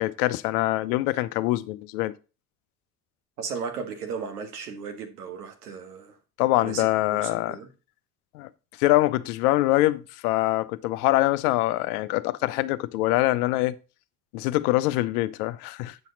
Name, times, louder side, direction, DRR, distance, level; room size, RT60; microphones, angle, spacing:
voice 1, 0.0-2.1 6.4-7.6 8.3-8.5 8.8-13.8 14.3-16.0, left 17 dB, 75° left, 0.7 m, -24 dB
voice 2, 3.4-6.2 6.6-7.7, right 5 dB, 90° right, 1.6 m, -36 dB
8.9 x 5.7 x 3.9 m
hypercardioid pair, 60°, 45 cm